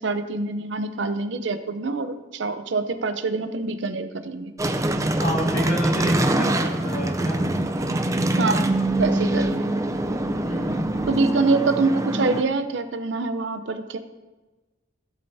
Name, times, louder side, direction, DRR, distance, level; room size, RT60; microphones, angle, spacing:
voice 1, 0.0-4.5 8.4-9.7 11.1-14.0, right 3 dB, 75° right, 10 dB, 0.7 m, -25 dB
sound 1, 4.6-12.4, right 1 dB, 15° right, 0.6 m, -24 dB
voice 2, 5.1-7.5 10.4-10.9, equal, 50° left, -4 dB, 3.2 m, -30 dB
16.5 x 7.8 x 2.8 m, 1.2 s
head